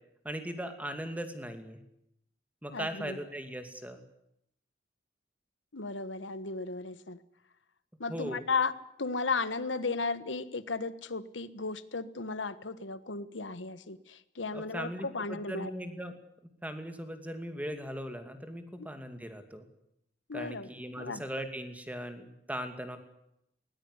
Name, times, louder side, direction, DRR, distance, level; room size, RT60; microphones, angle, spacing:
voice 1, 0.2-1.8 2.6-4.0 8.1-8.4 14.5-16.2 16.6-19.6 20.3-23.0, equal, 10° right, 7 dB, 2.5 m, -39 dB
voice 2, 2.7-3.2 5.7-7.2 8.0-8.7 9.0-15.7 18.8-18.9 20.3-21.2, left 4 dB, 90° left, 14 dB, 1.4 m, -35 dB
20.0 x 20.0 x 9.7 m, 0.78 s
head